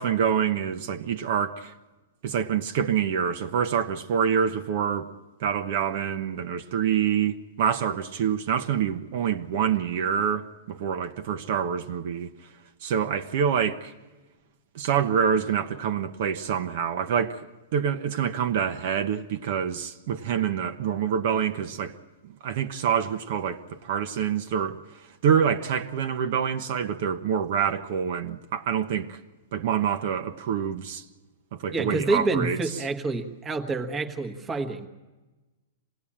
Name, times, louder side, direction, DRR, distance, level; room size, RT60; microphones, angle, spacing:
voice 1, 0.0-1.7 2.2-5.1 5.4-12.3 12.8-13.9 14.7-21.9 22.4-24.8 25.2-29.2 29.5-31.0 31.5-32.6, right 7 dB, 40° right, 1.0 m, -26 dB
voice 2, 31.7-34.9, right 3 dB, 10° right, 1.4 m, -28 dB
26.5 x 18.5 x 8.7 m
supercardioid pair, 175°, 0 cm